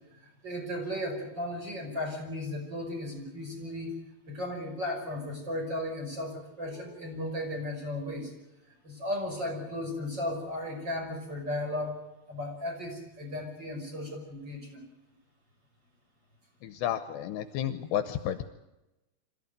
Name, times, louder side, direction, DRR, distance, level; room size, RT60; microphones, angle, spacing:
voice 1, 0.1-4.0 4.3-8.3 8.8-12.0 12.3-14.8, left 1 dB, 25° right, 1 dB, 5.9 m, -35 dB
voice 2, 16.6-18.4, left 10 dB, 75° left, 11 dB, 2.9 m, -31 dB
26.5 x 14.5 x 9.4 m, 0.98 s
omnidirectional pair, 5.3 m